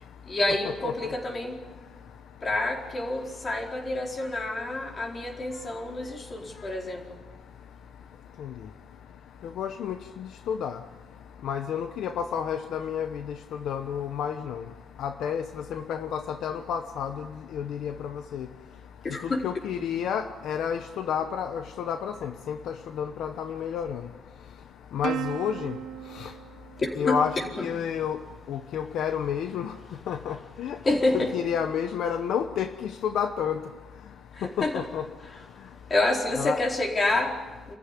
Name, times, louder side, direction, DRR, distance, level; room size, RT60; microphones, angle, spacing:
voice 1, 0.2-1.8 2.4-7.2 19.0-19.4 19.8-19.9 26.8-27.7 30.8-31.3 34.3-34.8 35.3-35.4 35.9-37.8, left 2 dB, 30° left, 1 dB, 4.4 m, -28 dB
voice 2, 9.6-9.9 10.5-10.8 11.4-13.2 13.7-14.6 15.0-15.4 15.7-17.1 17.5-18.5 19.4-22.6 23.0-24.0 24.9-25.7 26.2-26.3 27.0-27.4 27.6-28.2 28.5-29.7 30.1-30.8 31.1-33.6 34.6-35.0 36.4-36.6, left 8 dB, 80° left, 8 dB, 1.0 m, -30 dB
Plucked string instrument, 25.0-27.8, right 10 dB, 80° right, 0.8 m, -37 dB
28.5 x 14.5 x 10.0 m, 1.3 s
cardioid pair, 120°, 0 cm